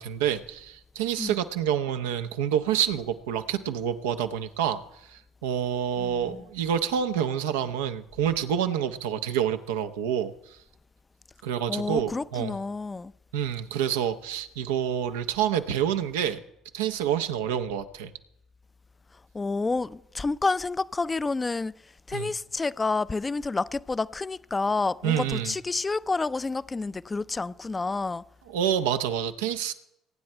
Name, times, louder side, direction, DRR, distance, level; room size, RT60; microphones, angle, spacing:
voice 1, 0.0-4.8 5.1-10.6 11.4-12.6 13.3-16.4 16.7-18.1 22.1-22.3 25.0-25.6 28.5-29.7, right 9 dB, 80° right, 0.8 m, -28 dB
voice 2, 6.0-6.5 11.7-13.1 19.3-21.7 22.1-28.2, left 3 dB, 25° left, 0.5 m, -29 dB
23.0 x 9.6 x 4.5 m
hypercardioid pair, 55°, 0 cm